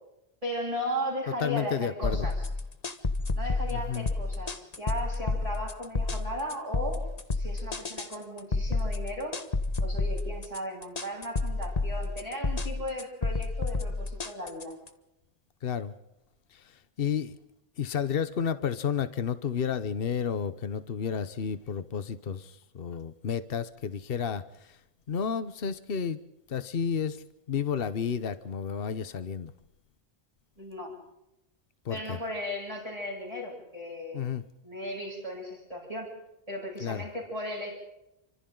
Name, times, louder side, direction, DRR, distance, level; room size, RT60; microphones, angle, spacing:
voice 1, 0.4-2.5 3.3-7.0 7.3-9.4 9.8-14.8 30.6-31.0 31.9-34.3 34.6-36.1 36.5-37.8, equal, 35° right, -5 dB, 8.2 m, -36 dB
voice 2, 1.4-2.3 3.7-4.1 15.6-15.9 16.5-16.6 17.0-17.4 17.8-24.4 24.7-24.8 25.1-26.2 26.5-29.5 31.8-32.2 34.1-34.4 36.8-37.1, left 7 dB, 65° left, 13 dB, 1.1 m, -31 dB
sound 1, 2.0-14.9, left 3 dB, 40° left, 1.4 m, -30 dB
29.0 x 26.0 x 3.9 m, 0.89 s
omnidirectional pair, 1.0 m